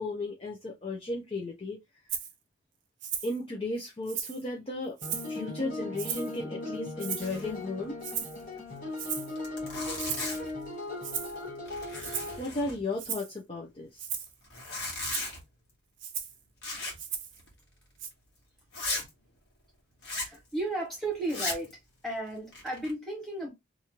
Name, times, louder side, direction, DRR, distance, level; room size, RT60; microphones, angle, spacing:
voice 1, 0.0-1.8 3.2-5.0 5.3-8.0 12.4-14.1, left 2 dB, 30° left, 0.6 m, -35 dB
Rattle (instrument), 2.1-2.3 3.0-3.4 3.8-4.4 5.0-5.4 6.0-6.4 7.0-7.4 8.0-8.4 9.0-9.3 10.0-10.4 11.0-11.4 12.0-12.4 13.0-13.3 14.0-14.3 15.0-15.3 16.0-16.4 17.0-17.4 18.0-18.1, right 8 dB, 90° right, 0.7 m, -36 dB
sound 1, 5.0-12.4, left 2 dB, 45° left, 1.1 m, -38 dB
Zipper (clothing), 7.2-7.6 7.8-7.9 8.3-8.4 9.0-9.1 9.4-10.6 11.1-11.4 11.7-13.1 14.4-15.4 16.6-17.1 17.4-17.5 18.0-18.1 18.7-19.1 20.0-20.4 21.2-21.7 22.3-22.9, left 2 dB, 65° left, 1.5 m, -36 dB
voice 2, 20.1-21.8 22.0-23.5, right 2 dB, ahead, 1.4 m, -34 dB
3.0 x 2.5 x 2.9 m
head